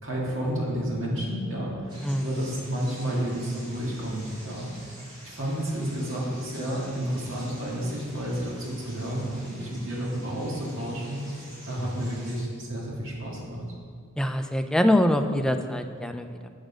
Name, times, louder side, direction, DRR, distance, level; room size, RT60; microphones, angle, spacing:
voice 1, 0.0-1.9 2.2-4.7 5.2-11.2 11.7-13.6, right 1 dB, 65° right, -4 dB, 2.0 m, -31 dB
sound 1, 1.9-12.4, equal, 20° right, 1.9 m, -48 dB
voice 2, 14.2-16.5, left 1 dB, 5° left, 6 dB, 0.3 m, -24 dB
6.6 x 6.3 x 5.0 m, 2.1 s
head